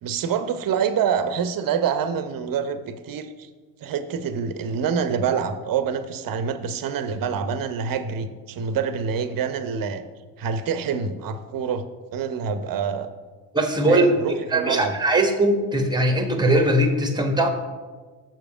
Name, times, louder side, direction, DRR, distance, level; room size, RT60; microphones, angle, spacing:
voice 1, 0.0-3.3 3.8-10.0 10.4-11.8 12.1-13.1 13.9-14.9, right 7 dB, 40° right, 10 dB, 0.9 m, -26 dB
voice 2, 13.5-14.1 14.5-17.5, right 1 dB, 10° right, 5 dB, 1.3 m, -20 dB
6.9 x 6.0 x 4.9 m, 1.4 s
hypercardioid pair, 65°, 50 cm